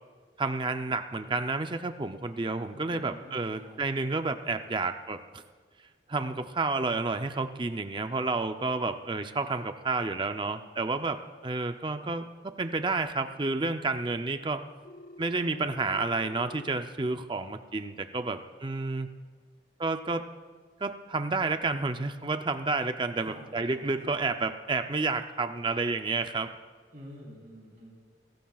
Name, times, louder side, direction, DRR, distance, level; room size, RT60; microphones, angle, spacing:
voice 1, 0.4-5.4 6.1-14.6 15.2-19.1 19.8-20.2 20.8-26.5, right 3 dB, 25° right, 8 dB, 0.5 m, -30 dB
voice 2, 2.7-3.8 23.1-24.2 26.9-27.9, equal, 45° right, -3 dB, 3.7 m, -49 dB
Telephone, 14.8-16.8, left 2 dB, 50° left, 0.5 m, -48 dB
22.0 x 17.0 x 2.4 m, 1.5 s
head